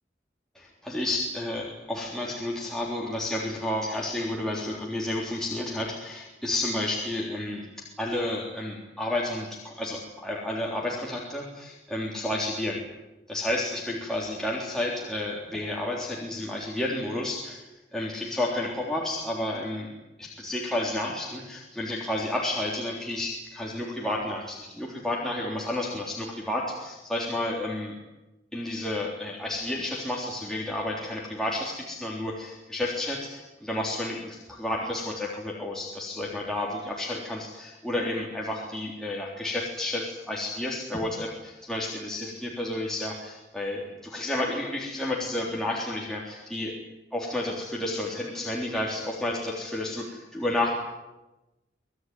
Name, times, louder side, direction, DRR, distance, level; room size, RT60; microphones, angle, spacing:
voice 1, 0.6-7.7 8.0-12.8 13.3-17.6 17.9-19.9 20.2-28.0 28.5-46.8 47.1-50.7, left 1 dB, 5° left, -4 dB, 3.7 m, -31 dB
26.0 x 20.0 x 9.5 m, 1.0 s
head